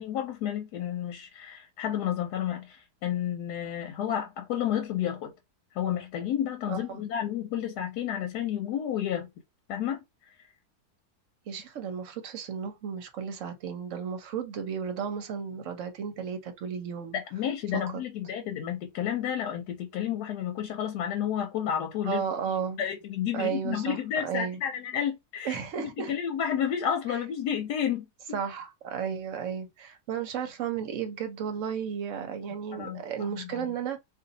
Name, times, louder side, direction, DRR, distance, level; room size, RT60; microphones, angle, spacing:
voice 1, 0.0-5.3 5.7-9.3 9.7-10.0 10.4-10.5 17.1-22.2 22.8-28.4 32.7-33.7, left 9 dB, 90° left, 1.2 m, -31 dB
voice 2, 6.7-7.0 11.5-17.1 17.7-17.8 22.1-22.8 23.3-24.0 24.2-24.6 25.4-26.1 28.3-34.0, right 7 dB, 60° right, 0.9 m, -33 dB
2.6 x 2.5 x 3.9 m
omnidirectional pair, 1.7 m